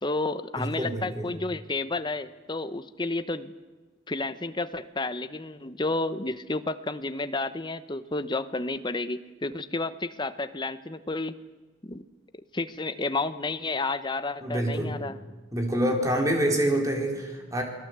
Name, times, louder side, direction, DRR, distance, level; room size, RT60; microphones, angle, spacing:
voice 1, 0.0-3.5 4.1-11.4 11.8-12.0 12.5-15.2, left 2 dB, 25° left, 12 dB, 1.0 m, -31 dB
voice 2, 0.6-1.3 14.4-15.0 15.5-17.6, right 1 dB, 20° right, 2 dB, 4.4 m, -26 dB
29.0 x 20.5 x 8.2 m, 1.3 s
head